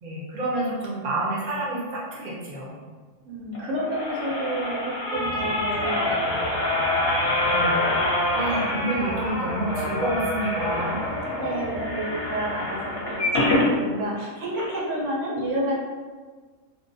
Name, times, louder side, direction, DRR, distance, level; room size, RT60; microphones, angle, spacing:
voice 1, 0.0-2.8 7.4-7.9 8.3-11.0, right 1 dB, 45° right, -6 dB, 0.6 m, -29 dB
voice 2, 3.3-6.6 11.3-15.7, right 1 dB, 75° right, -4 dB, 0.9 m, -30 dB
sound 1, 3.5-13.7 14.2-14.3 14.5-14.6, left 1 dB, 55° left, 0.8 m, -26 dB
sound 2, 5.1-13.6, left 1 dB, 25° left, 1.0 m, -40 dB
2.5 x 2.0 x 2.6 m, 1.4 s
omnidirectional pair, 1.4 m